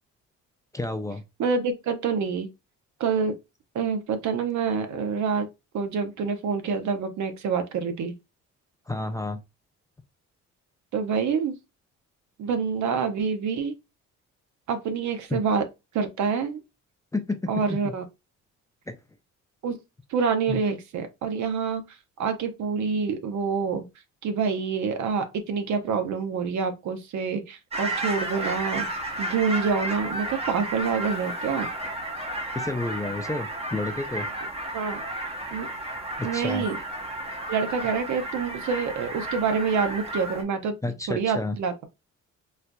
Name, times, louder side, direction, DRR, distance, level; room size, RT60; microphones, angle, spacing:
voice 1, 0.7-1.2 8.9-9.4 15.3-15.4 17.1-17.4 17.8-17.9 18.9-19.0 20.5-20.6 32.5-34.3 36.2-36.7 40.8-41.6, left 2 dB, 10° left, 0.5 m, -30 dB
voice 2, 1.4-2.5 3.0-3.4 3.7-5.5 5.7-8.1 10.9-11.6 12.4-13.8 14.7-15.6 15.9-16.6 17.5-18.0 19.6-19.8 20.1-21.8 22.2-23.9 24.2-28.9 29.2-31.7 34.7-35.0 35.5-35.7 36.2-36.8 37.5-40.7 41.1-41.9, right 5 dB, 70° right, 0.8 m, -27 dB
sound 1, 27.7-40.4, right 1 dB, 20° right, 0.8 m, -33 dB
4.3 x 2.5 x 2.3 m
cardioid pair, 90°, 30 cm